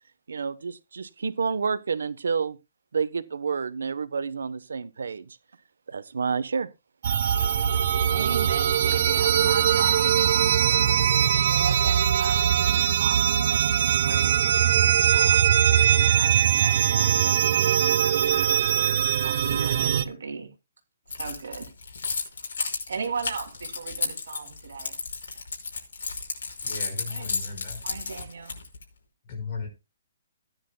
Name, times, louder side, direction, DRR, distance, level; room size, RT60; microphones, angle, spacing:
voice 1, 0.3-2.6 2.9-5.4 5.9-6.7, right 5 dB, 90° right, 0.9 m, -29 dB
sound 1, 7.0-20.0, right 9 dB, 45° right, 0.8 m, -21 dB
voice 2, 8.1-10.3 11.4-14.5 14.8-15.5 15.9-17.4 18.7-20.5 21.2-21.7 22.9-25.0 27.1-27.3 27.8-28.6, right 5 dB, 70° right, 2.7 m, -37 dB
Keys jangling, 21.1-28.8, left 4 dB, 75° left, 5.1 m, -32 dB
voice 3, 26.6-27.9 29.2-29.7, left 4 dB, 30° left, 5.0 m, -36 dB
17.0 x 10.5 x 2.2 m
hypercardioid pair, 175°, 0 cm